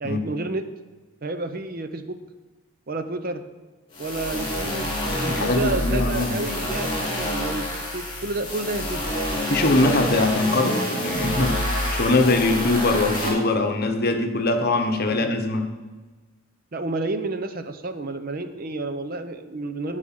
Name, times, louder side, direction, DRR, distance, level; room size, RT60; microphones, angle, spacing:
voice 1, 0.0-0.7 1.2-2.2 2.9-3.4 4.0-4.9 5.2-7.7 7.9-9.1 15.1-15.4 16.7-20.0, right 2 dB, 40° right, 9 dB, 0.6 m, -30 dB
sound 1, 3.9-13.3, left 1 dB, 20° left, 2.9 m, -27 dB
voice 2, 5.2-6.4 9.5-15.7, left 2 dB, 45° left, 5 dB, 1.0 m, -22 dB
11.0 x 4.9 x 7.4 m, 1.3 s
head